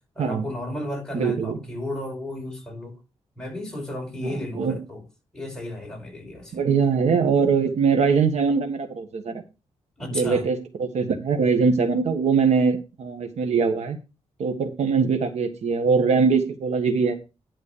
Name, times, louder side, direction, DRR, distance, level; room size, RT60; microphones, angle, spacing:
voice 1, 0.2-3.0 3.4-5.0 5.3-6.6 10.0-10.4, left 1 dB, 5° left, 5.4 m, -33 dB
voice 2, 1.1-1.6 4.2-4.8 6.5-9.4 10.1-14.0 14.4-17.2, right 5 dB, 75° right, 1.4 m, -22 dB
11.5 x 4.1 x 6.7 m
wide cardioid pair, 120°, 12 cm